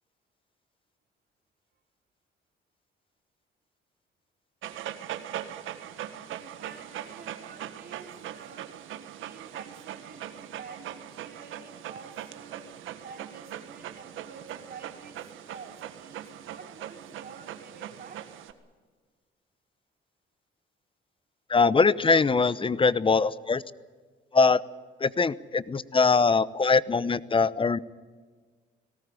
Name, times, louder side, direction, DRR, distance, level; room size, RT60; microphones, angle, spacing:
Dog, 4.6-18.5, right 11 dB, 85° right, 1.7 m, -41 dB
voice 1, 6.3-12.7 13.0-15.2 15.5-18.3, right 5 dB, 50° right, 3 dB, 5.3 m, -49 dB
voice 2, 21.5-23.6 24.3-24.6 25.0-27.8, left 4 dB, 25° left, 18 dB, 0.8 m, -22 dB
19.5 x 18.0 x 9.7 m, 1.5 s
cardioid pair, 90°, 20 cm